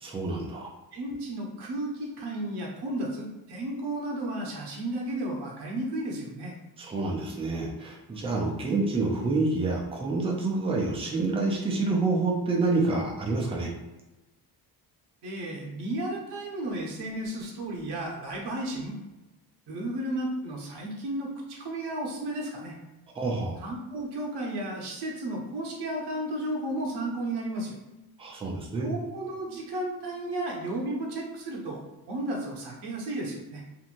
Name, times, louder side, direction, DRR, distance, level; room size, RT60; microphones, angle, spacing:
voice 1, 0.0-0.7 6.8-13.7 23.2-23.6 28.2-28.9, right 3 dB, 15° right, -1 dB, 0.3 m, -28 dB
voice 2, 0.9-6.6 15.2-19.0 19.7-22.8 23.6-27.7 28.8-33.6, right 1 dB, 80° right, -1 dB, 0.8 m, -33 dB
2.9 x 2.6 x 2.5 m, 1.0 s
cardioid pair, 165°, 40 cm